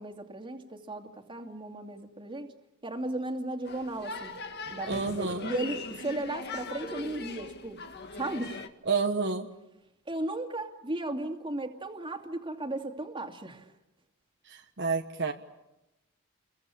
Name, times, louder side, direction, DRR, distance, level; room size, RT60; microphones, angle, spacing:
voice 1, 0.0-2.5 2.8-4.3 4.7-7.8 8.2-8.6 10.1-13.7, right 2 dB, 25° right, 4 dB, 2.6 m, -35 dB
sound 1, 3.7-8.7, left 3 dB, 50° left, 2.0 m, -40 dB
voice 2, 4.9-5.5 8.9-9.5 14.5-15.3, right 4 dB, 55° right, 4 dB, 1.3 m, -29 dB
29.5 x 23.0 x 8.5 m, 0.93 s
head